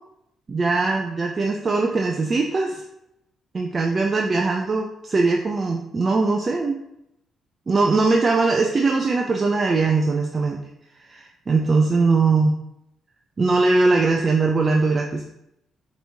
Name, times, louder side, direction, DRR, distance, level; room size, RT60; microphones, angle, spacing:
voice 1, 0.5-2.8 3.5-6.8 7.7-10.6 11.1-12.5 13.4-15.2, right 3 dB, 35° right, 1 dB, 0.4 m, -21 dB
5.3 x 3.0 x 2.7 m, 0.81 s
cardioid pair, 90°, 0 cm